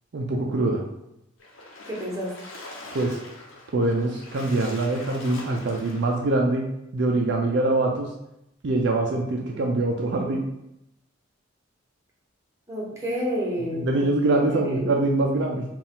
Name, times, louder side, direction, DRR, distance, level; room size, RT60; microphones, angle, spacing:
voice 1, 0.1-0.8 2.9-3.2 3.7-6.7 6.9-8.1 8.6-10.4 13.7-15.6, right 2 dB, 60° right, 0 dB, 0.4 m, -24 dB
Splash splatter, 1.4-6.3, left 2 dB, 75° left, 0.9 m, -43 dB
voice 2, 1.9-2.3 12.7-14.1 14.5-14.9, equal, 15° right, -4 dB, 1.0 m, -30 dB
4.2 x 2.4 x 3.7 m, 0.84 s
head